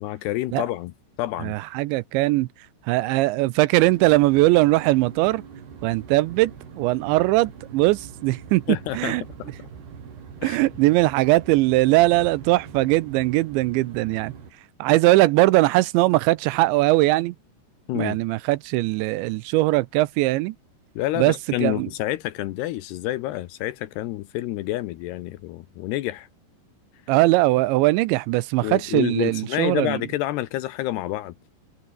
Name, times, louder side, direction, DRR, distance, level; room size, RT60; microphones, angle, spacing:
voice 1, 0.0-0.9 1.2-1.5 8.7-9.5 10.4-10.6 17.9-18.2 21.0-26.3 28.6-31.4, left 15 dB, 80° left, 2.5 m, -28 dB
voice 2, 1.4-2.5 2.9-5.4 5.8-9.2 10.4-14.3 14.8-17.4 17.9-20.6 21.2-21.3 21.6-21.9 27.1-30.0, right 19 dB, 85° right, 2.7 m, -20 dB
sound 1, 3.8-14.5, right 6 dB, 55° right, 6.2 m, -42 dB
omnidirectional pair, 5.7 m